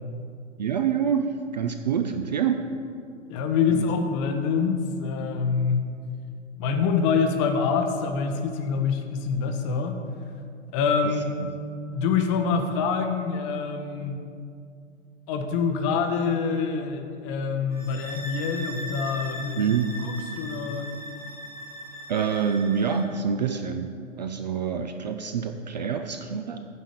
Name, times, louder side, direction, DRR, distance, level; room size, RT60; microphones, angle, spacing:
voice 1, 0.6-2.7 3.7-3.9 11.0-11.1 11.4-11.5 19.5-19.9 22.1-26.7, right 7 dB, 35° right, 7 dB, 0.4 m, -26 dB
voice 2, 3.3-5.9 6.6-10.0 10.7-11.3 11.9-14.2 15.3-19.6 20.0-20.9, left 5 dB, 25° left, 6 dB, 0.6 m, -25 dB
sound 1, 17.7-23.1, equal, 5° left, 1.0 m, -39 dB
9.4 x 5.0 x 6.8 m, 2.4 s
figure-of-eight pair, 115°, 39 cm